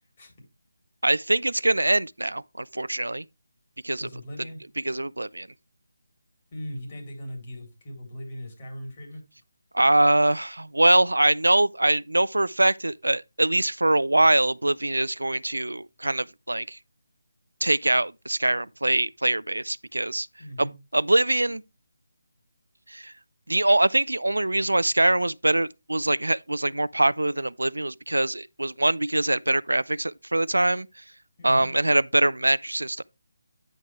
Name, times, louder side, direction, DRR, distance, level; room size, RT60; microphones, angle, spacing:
voice 1, 1.0-3.2 3.8-4.1 4.8-5.5 9.7-16.8 17.6-20.3 20.6-21.6 22.9-23.1 23.5-30.9 31.4-33.0, right 1 dB, 85° right, 0.4 m, -23 dB
voice 2, 4.0-4.6 6.5-9.2 20.4-20.7 31.4-31.7, equal, 30° left, 3.9 m, -39 dB
9.3 x 6.4 x 3.4 m
figure-of-eight pair, 155°, 0 cm